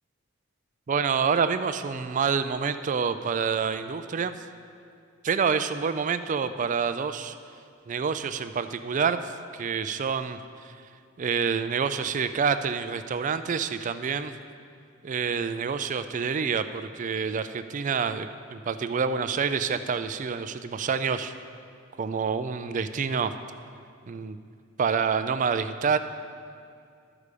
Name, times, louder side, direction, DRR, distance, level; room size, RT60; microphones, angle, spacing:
voice 1, 0.9-4.3 5.2-7.4 7.9-10.7 11.2-14.3 15.0-21.3 22.0-23.3 24.1-24.4 24.8-26.0, right 6 dB, 40° right, 11 dB, 0.4 m, -27 dB
12.5 x 4.9 x 6.7 m, 2.3 s
head